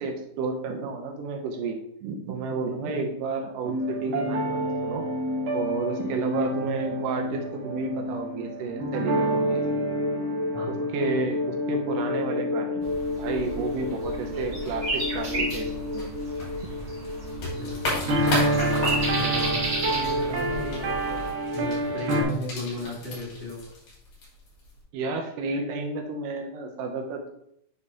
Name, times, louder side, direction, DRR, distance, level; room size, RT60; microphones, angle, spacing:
voice 1, 0.0-5.0 5.5-9.6 10.7-12.9 13.2-16.1 24.9-27.3, right 4 dB, 85° right, 2 dB, 2.5 m, -31 dB
sound 1, 3.6-22.2, equal, 60° right, 1.5 m, -28 dB
voice 2, 10.5-10.9 17.5-18.0 19.0-23.7, left 2 dB, 40° left, -7 dB, 0.8 m, -36 dB
sound 2, 12.8-21.2, right 2 dB, 35° right, 2.6 m, -33 dB
sound 3, 14.6-24.8, left 1 dB, 75° left, 4.3 m, -36 dB
8.6 x 4.2 x 3.7 m, 0.74 s
omnidirectional pair, 3.7 m